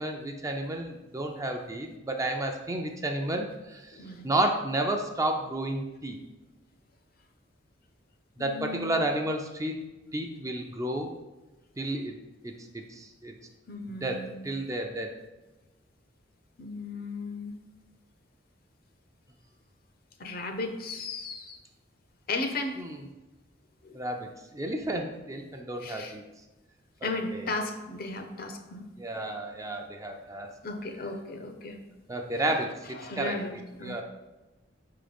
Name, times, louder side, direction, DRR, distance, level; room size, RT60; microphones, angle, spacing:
voice 1, 0.0-6.2 8.4-9.8 10.1-11.1 11.8-12.1 12.4-13.3 13.9-15.1 22.8-23.0 23.9-26.2 27.0-27.5 29.0-30.5 32.1-33.4 33.8-34.0, right 1 dB, 15° right, 3 dB, 0.5 m, -32 dB
voice 2, 3.9-4.3 8.4-9.1 13.7-14.5 16.6-17.6 20.2-21.6 22.3-22.8 23.8-24.0 25.8-26.1 27.0-28.9 30.6-31.8 32.3-32.4 32.9-34.0, left 3 dB, 50° left, 6 dB, 0.7 m, -35 dB
5.0 x 3.8 x 5.2 m, 1.1 s
head